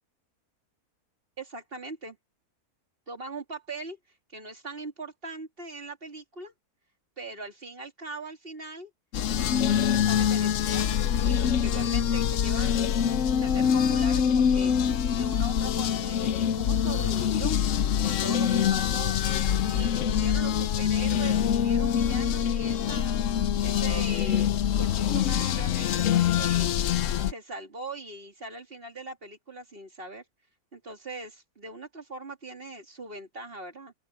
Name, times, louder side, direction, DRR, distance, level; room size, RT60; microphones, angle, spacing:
voice 1, 1.4-2.2 3.1-4.0 4.3-6.5 7.2-8.9 9.3-12.8 13.3-14.7 15.1-17.6 18.0-19.2 19.6-23.2 23.6-24.5 24.8-26.7 27.2-30.2 30.7-33.9, right 2 dB, 35° right, 2.9 m, -41 dB
sound 1, 9.1-27.3, left 8 dB, 60° left, 1.0 m, -25 dB
open air
omnidirectional pair, 1.6 m